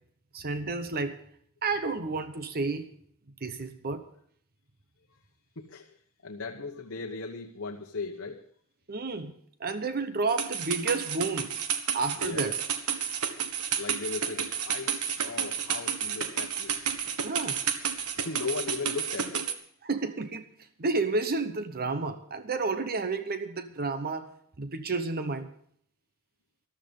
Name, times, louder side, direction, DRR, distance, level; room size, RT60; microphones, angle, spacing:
voice 1, 0.3-1.2 1.6-2.9 3.4-4.0 8.9-9.3 9.6-11.5 11.9-12.6 17.2-17.6 19.8-20.5 20.8-24.3 24.6-25.5, right 3 dB, 45° right, 10 dB, 0.9 m, -31 dB
voice 2, 5.6-5.9 6.2-8.4 12.2-12.5 13.0-13.1 13.7-16.8 18.2-19.5, left 4 dB, 60° left, 2 dB, 1.1 m, -37 dB
sound 1, 10.3-19.5, right 7 dB, 85° right, 1.5 m, -31 dB
14.0 x 13.0 x 5.3 m, 0.62 s
head